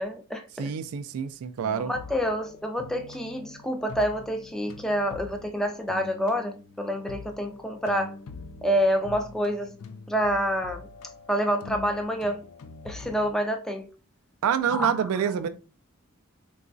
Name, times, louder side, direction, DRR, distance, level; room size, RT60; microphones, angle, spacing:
voice 1, 0.0-0.7 1.8-8.1 8.6-9.7 10.1-10.8 11.3-12.4 12.8-13.9 14.7-15.1, equal, ahead, 0.3 m, -27 dB
voice 2, 0.6-1.9 14.4-15.5, right 8 dB, 85° right, 0.3 m, -27 dB
sound 1, 1.6-13.3, left 4 dB, 85° left, 0.4 m, -44 dB
3.8 x 2.3 x 2.5 m
head